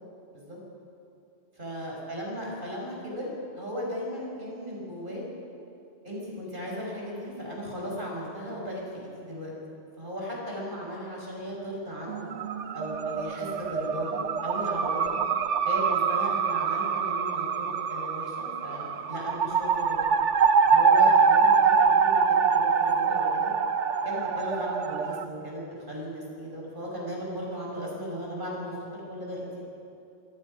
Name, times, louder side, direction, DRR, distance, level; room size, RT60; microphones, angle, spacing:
voice 1, 1.6-5.2 6.0-9.5 10.0-12.3 12.7-15.2 15.6-20.0 20.7-23.5 24.0-29.6, equal, 45° right, -3 dB, 6.0 m, -36 dB
sound 1, 12.1-25.2, right 5 dB, 85° right, 1.2 m, -24 dB
26.5 x 18.5 x 5.5 m, 2.7 s
omnidirectional pair, 1.2 m